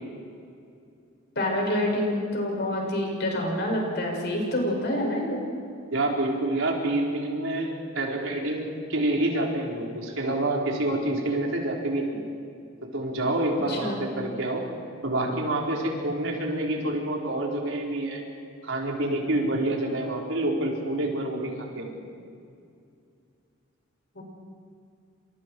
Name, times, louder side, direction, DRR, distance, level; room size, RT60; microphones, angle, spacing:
voice 1, 1.4-5.4 13.7-14.0 24.1-24.2, left 1 dB, 55° left, -1 dB, 7.1 m, -27 dB
voice 2, 5.9-12.2 12.8-14.6 15.0-18.2 18.6-21.9, right 1 dB, 75° right, -1 dB, 4.8 m, -27 dB
29.5 x 27.0 x 4.8 m, 2.4 s
head